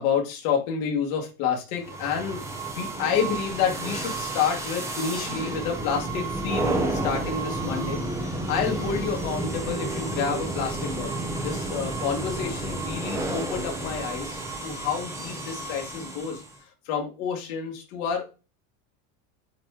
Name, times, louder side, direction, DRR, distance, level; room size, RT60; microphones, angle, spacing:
voice 1, 0.0-2.4 2.7-18.3, left 7 dB, 65° left, 2 dB, 2.2 m, -29 dB
sound 1, 1.8-16.6, right 2 dB, 5° right, 0.5 m, -31 dB
8.7 x 3.0 x 3.7 m, 0.31 s
cardioid pair, 170°, 45 cm